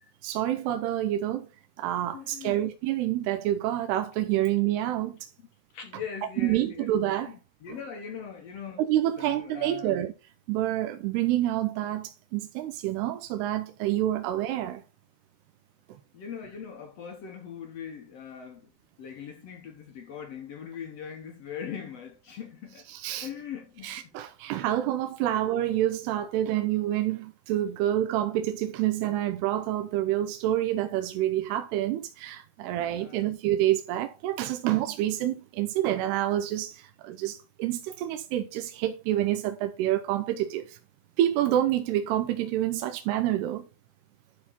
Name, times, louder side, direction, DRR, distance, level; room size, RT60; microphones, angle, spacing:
voice 1, 0.2-1.5 1.8-5.3 6.4-7.3 8.8-10.1 10.5-14.8 22.9-23.3 23.8-40.8 41.2-43.7, right 13 dB, 85° right, 2.8 m, -28 dB
voice 2, 2.1-2.6 5.7-6.9 7.2-8.8 9.2-10.0 16.1-18.7 19.0-22.8 23.1-24.1 24.8-24.9 25.3-25.4 32.8-33.4, left 7 dB, 70° left, 1.5 m, -41 dB
12.0 x 4.2 x 4.1 m
omnidirectional pair, 4.7 m